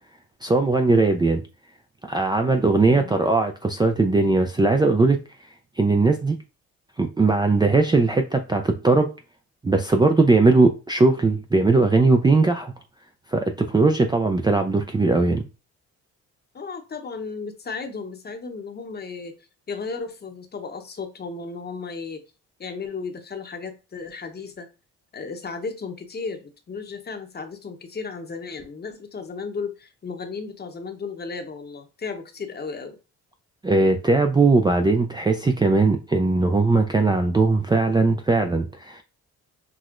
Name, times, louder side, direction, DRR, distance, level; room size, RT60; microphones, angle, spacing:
voice 1, 0.4-1.4 2.1-5.2 5.8-6.4 7.0-9.1 9.6-12.7 13.3-15.4 33.6-39.0, right 3 dB, 15° right, 0.4 m, -19 dB
voice 2, 2.8-3.1 16.5-19.3 19.7-22.3 22.6-24.7 25.1-33.0, left 4 dB, 35° left, 0.8 m, -34 dB
6.1 x 2.0 x 2.5 m
cardioid pair, 90°, 30 cm